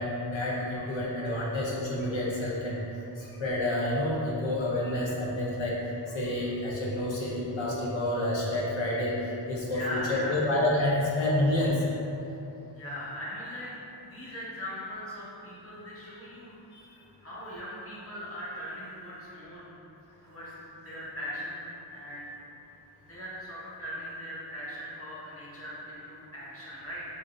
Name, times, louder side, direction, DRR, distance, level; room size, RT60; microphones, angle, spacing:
voice 1, 0.0-2.8 3.2-5.8 6.1-9.2 9.5-11.8 16.7-16.8, left 1 dB, 85° left, -5 dB, 1.0 m, -29 dB
voice 2, 9.7-10.4 12.7-16.6 17.2-19.7 20.2-21.6 21.9-22.3 23.1-27.0, equal, 30° left, -8 dB, 1.4 m, -39 dB
7.2 x 2.6 x 2.7 m, 2.9 s
wide cardioid pair, 95°, 44 cm